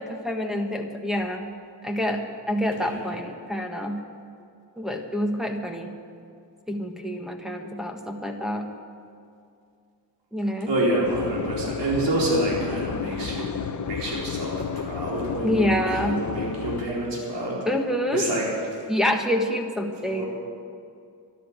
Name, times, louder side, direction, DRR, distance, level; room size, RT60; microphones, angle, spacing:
voice 1, 0.0-1.5 1.8-4.0 4.8-5.9 6.7-8.7 10.3-10.7 15.4-16.3 17.7-18.2 18.9-20.2, equal, ahead, 1 dB, 1.5 m, -27 dB
voice 2, 2.7-3.1 10.7-13.5 13.9-17.6 18.1-18.8 20.1-20.3, right 1 dB, 80° right, -4 dB, 4.3 m, -28 dB
sound 1, 11.0-16.9, left 7 dB, 45° left, 0.8 m, -31 dB
13.0 x 11.5 x 9.1 m, 2.4 s
cardioid pair, 105°, 42 cm